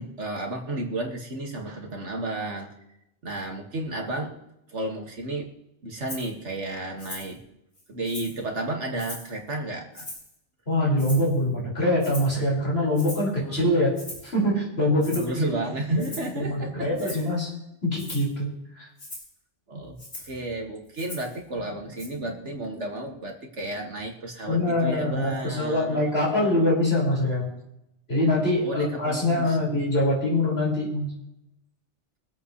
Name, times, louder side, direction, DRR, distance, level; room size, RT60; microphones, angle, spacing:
voice 1, 0.0-2.7 3.2-4.4 4.7-5.5 5.8-7.4 7.9-10.1 13.3-13.6 15.1-17.3 19.7-26.7 28.6-29.7, right 1 dB, 80° right, 1 dB, 2.4 m, -32 dB
Rattle (instrument), 6.1-6.3 7.0-7.3 7.8-8.4 9.0-9.4 9.9-10.4 11.0-11.4 12.0-12.4 13.0-13.3 14.0-14.3 15.0-15.3 16.0-16.4 17.0-17.3 18.0-18.3 19.0-19.3 20.0-20.4 21.0-21.4 22.0-22.1, left 1 dB, 90° left, 4.2 m, -40 dB
voice 2, 10.7-13.9 14.2-15.5 16.0-16.1 16.3-17.5 17.8-18.5 18.8-18.9 24.5-27.5 28.1-31.1, left 1 dB, 60° left, -5 dB, 5.6 m, -24 dB
24.5 x 8.5 x 3.2 m, 0.84 s
omnidirectional pair, 1.2 m